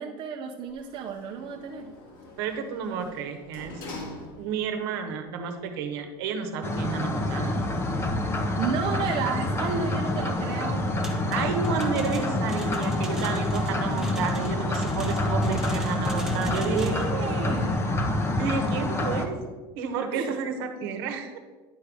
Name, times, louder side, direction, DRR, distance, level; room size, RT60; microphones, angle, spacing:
voice 1, 0.0-1.9 8.6-10.9 12.6-12.9 16.7-18.0 20.1-20.4, right 6 dB, 40° right, 1 dB, 0.7 m, -32 dB
Sliding door, 0.7-4.8 5.2-5.3, left 2 dB, 70° left, 1.7 m, -44 dB
voice 2, 2.4-3.9 4.4-7.6 11.3-17.0 18.4-19.4 19.7-21.4, right 6 dB, 75° right, 6 dB, 1.1 m, -31 dB
sound 1, 6.6-19.3, left 2 dB, 20° left, 0.8 m, -27 dB
sound 2, 11.0-17.1, right 2 dB, 5° right, 1.0 m, -43 dB
10.0 x 3.9 x 4.7 m, 1.4 s
supercardioid pair, 125°, 13 cm